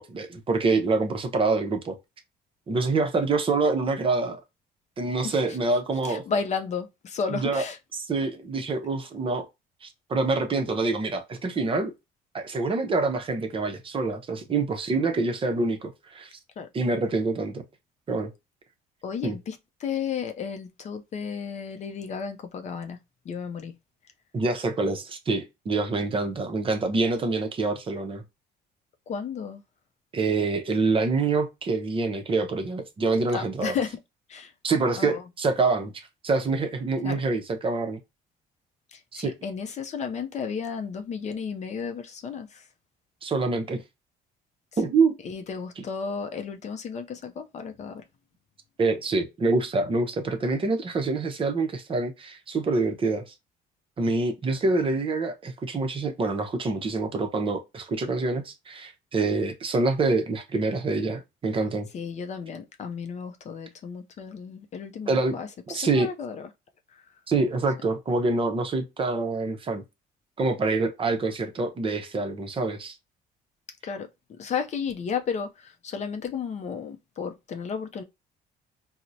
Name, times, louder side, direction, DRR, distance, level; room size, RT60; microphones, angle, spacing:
voice 1, 0.0-2.0 2.7-4.4 5.0-6.2 7.3-7.7 7.9-9.5 9.8-11.9 12.3-16.3 16.7-17.6 18.1-18.3 19.2-19.4 24.3-28.2 30.1-33.8 34.6-35.9 36.2-38.0 39.1-39.3 43.2-43.8 44.8-45.2 45.8-45.9 48.8-53.3 54.0-61.9 65.1-65.4 65.7-66.1 67.3-69.8 70.4-72.9, right 3 dB, 30° right, 0.6 m, -26 dB
voice 2, 6.1-7.8 16.6-16.7 19.0-19.6 19.8-23.0 23.3-23.7 29.1-29.6 33.3-34.0 34.3-34.5 35.0-35.2 37.0-37.2 38.9-42.6 45.2-48.0 61.9-66.5 73.8-74.1 74.4-78.0, left 6 dB, 45° left, 0.5 m, -33 dB
4.3 x 2.0 x 2.6 m
cardioid pair, 110°, 17 cm